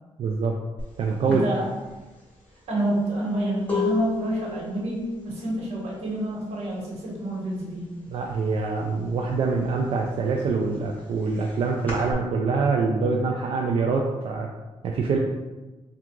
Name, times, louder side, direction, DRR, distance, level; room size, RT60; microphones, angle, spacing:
voice 1, 0.2-0.6 1.0-1.4 8.1-14.5 14.8-15.2, right 4 dB, 65° right, 0 dB, 0.4 m, -25 dB
sound 1, 0.8-0.9 1.3-7.0 7.2-7.7 8.0-9.2 9.6-12.1, left 4 dB, 15° left, 1.5 m, -34 dB
voice 2, 1.3-1.7 2.7-7.9, right 1 dB, 85° right, -3 dB, 1.2 m, -28 dB
3.5 x 2.4 x 4.5 m, 1.2 s
cardioid pair, 120°, 10 cm